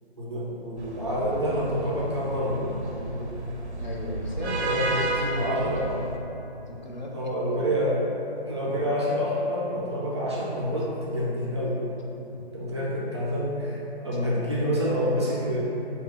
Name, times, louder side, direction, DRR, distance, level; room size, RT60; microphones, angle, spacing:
voice 1, 0.2-3.3 4.4-5.9 7.1-8.1 8.4-11.8 12.5-15.6, equal, 25° right, -6 dB, 0.4 m, -28 dB
sound 1, 0.8-6.2, right 2 dB, 90° right, 0.5 m, -32 dB
voice 2, 3.8-5.9 6.5-7.8 8.6-8.8 12.3-12.4 14.1-14.2, left 1 dB, 45° left, -2 dB, 0.5 m, -36 dB
3.0 x 2.3 x 3.7 m, 2.9 s
figure-of-eight pair, 145°, 33 cm